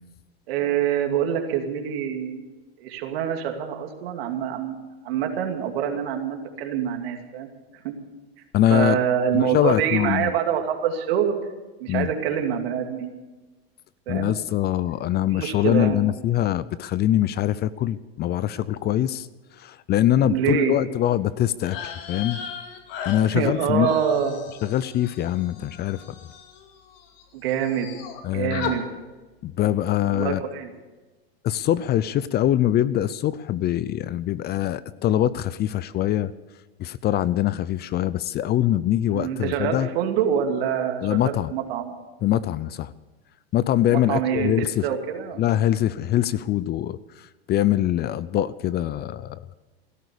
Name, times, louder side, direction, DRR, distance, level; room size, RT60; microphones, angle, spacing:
voice 1, 0.5-2.5 2.8-4.8 5.0-7.5 7.8-7.9 8.7-11.3 11.8-13.2 14.1-14.3 15.3-16.0 20.2-20.8 23.3-24.5 27.3-27.9 28.3-28.9 30.0-30.7 39.1-41.9 43.9-45.5, right 8 dB, 70° right, 4 dB, 2.6 m, -25 dB
voice 2, 8.5-9.0 9.3-10.3 11.9-12.1 14.1-19.3 19.6-22.4 23.1-23.9 24.6-26.0 28.2-28.7 29.4-30.4 31.4-36.3 36.8-39.9 41.0-41.5 42.2-42.9 43.5-44.8 45.4-47.0 47.5-49.4, left 12 dB, 30° left, 18 dB, 0.6 m, -23 dB
sound 1, 21.6-27.2 27.5-28.2 28.5-28.8, left 7 dB, 65° left, 2.6 m, -37 dB
16.5 x 13.0 x 6.8 m, 1.2 s
hypercardioid pair, 105°, 31 cm